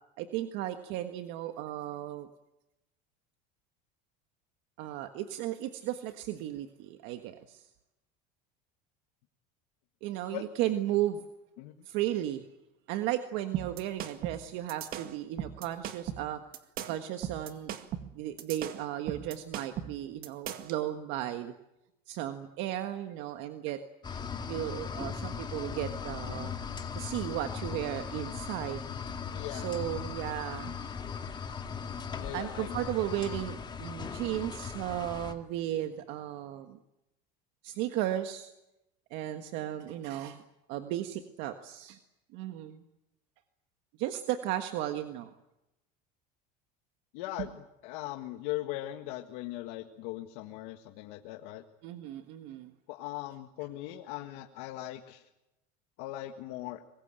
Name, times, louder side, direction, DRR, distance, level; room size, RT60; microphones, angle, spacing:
voice 1, 0.2-2.3 4.8-7.7 10.0-11.2 11.8-12.5 12.9-16.4 16.8-17.7 18.1-21.5 22.1-23.8 24.1-26.5 26.9-28.8 29.5-30.8 32.3-36.8 37.6-38.5 39.1-40.4 40.7-42.0 42.3-42.8 44.0-45.3 51.8-52.7, right 13 dB, 65° right, 7 dB, 1.6 m, -35 dB
sound 1, 13.5-20.8, right 10 dB, 45° right, 2.0 m, -38 dB
sound 2, 24.0-35.3, left 6 dB, 20° left, 2.3 m, -38 dB
voice 2, 29.3-29.7 32.2-32.9 47.1-51.6 52.9-55.3 56.0-56.8, left 15 dB, 70° left, 4 dB, 1.7 m, -39 dB
24.0 x 21.0 x 9.0 m, 0.92 s
supercardioid pair, 140°, 21 cm